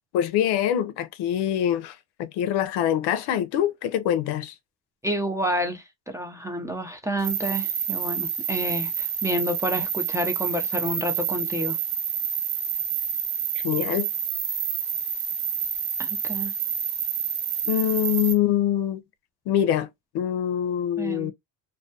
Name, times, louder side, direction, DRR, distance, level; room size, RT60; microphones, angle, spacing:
voice 1, 0.1-4.5 13.6-14.1 17.7-19.0 19.5-19.9 20.1-21.3, left 10 dB, 75° left, 0.6 m, -24 dB
voice 2, 5.0-5.8 6.1-11.8 16.0-16.5 21.0-21.3, equal, 10° right, 0.4 m, -29 dB
sound 1, 7.2-18.3, right 8 dB, 65° right, 1.2 m, -28 dB
2.3 x 2.2 x 2.5 m
cardioid pair, 100°, 40 cm